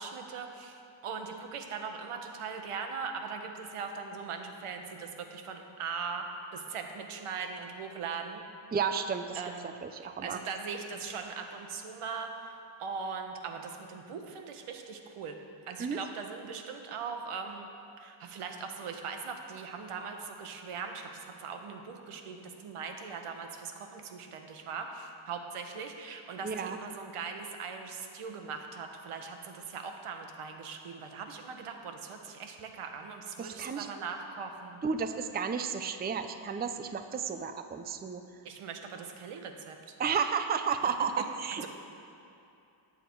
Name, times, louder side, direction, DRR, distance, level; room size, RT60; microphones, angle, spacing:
voice 1, 0.0-8.4 9.3-9.6 10.2-15.4 15.7-17.7 18.0-34.8 38.4-40.0 41.6-41.7, right 5 dB, 90° right, 4 dB, 1.4 m, -40 dB
voice 2, 8.7-9.4 9.8-10.4 15.8-16.0 26.4-26.8 33.4-33.9 34.8-38.2 40.0-41.7, right 6 dB, 20° right, 8 dB, 0.5 m, -32 dB
18.5 x 8.0 x 4.6 m, 2.7 s
cardioid pair, 130°, 50 cm